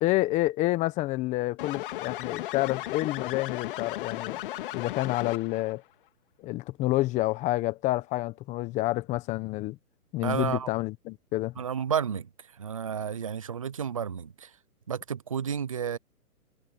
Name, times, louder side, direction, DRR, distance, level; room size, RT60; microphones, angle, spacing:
voice 1, 0.0-4.4 4.7-5.8 6.4-9.8 10.1-11.5, left 18 dB, 15° left, 1.3 m, -28 dB
sound 1, 1.6-5.7, left 15 dB, 35° left, 2.0 m, -35 dB
voice 2, 10.2-10.7 11.6-12.3 12.6-14.5 14.9-16.0, right 7 dB, 25° right, 0.5 m, -31 dB
hypercardioid pair, 145°, 46 cm